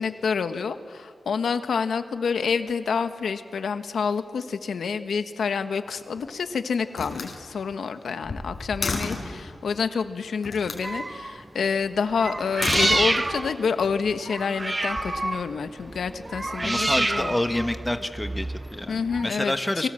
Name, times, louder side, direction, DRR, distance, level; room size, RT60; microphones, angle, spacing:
voice 1, 0.0-17.4 18.9-19.9, left 5 dB, 85° left, 9 dB, 1.2 m, -28 dB
Slam, 5.8-6.4 6.9-9.4 10.4-10.9 12.4-13.5, left 3 dB, 45° left, 4.6 m, -32 dB
sound 1, 10.8-11.4 12.1-19.2, right 2 dB, 20° right, 0.6 m, -28 dB
voice 2, 16.6-19.9, left 1 dB, 10° left, 7 dB, 1.1 m, -28 dB
29.0 x 23.5 x 7.6 m, 2.3 s
wide cardioid pair, 165°, 0 cm